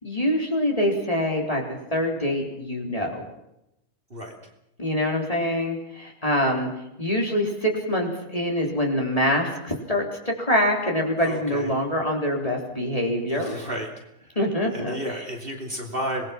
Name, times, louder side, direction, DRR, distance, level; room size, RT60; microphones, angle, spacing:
voice 1, 0.0-1.6 1.9-3.2 4.8-6.7 7.0-13.6 14.4-15.0, equal, 20° left, -1 dB, 4.0 m, -25 dB
voice 2, 11.2-11.7 13.3-13.9 14.2-14.4 14.7-16.3, equal, 35° right, 0 dB, 3.1 m, -32 dB
27.0 x 20.0 x 6.0 m, 0.85 s
omnidirectional pair, 1.7 m